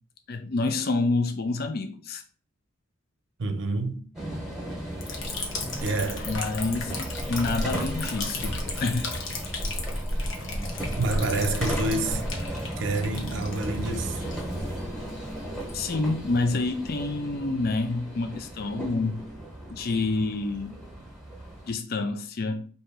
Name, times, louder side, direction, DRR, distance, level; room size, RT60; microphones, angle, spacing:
voice 1, 0.3-2.2 6.2-9.2 15.7-19.2 19.7-20.8 21.7-22.7, left 3 dB, 50° left, 0.4 m, -28 dB
voice 2, 3.4-4.0 5.8-6.3 11.0-12.2 12.8-14.2, right 2 dB, 65° right, 0.6 m, -28 dB
sound 1, 4.1-21.7, right 1 dB, ahead, 1.1 m, -36 dB
Liquid, 5.0-17.5, left 2 dB, 75° left, 0.9 m, -35 dB
3.2 x 2.8 x 4.5 m
head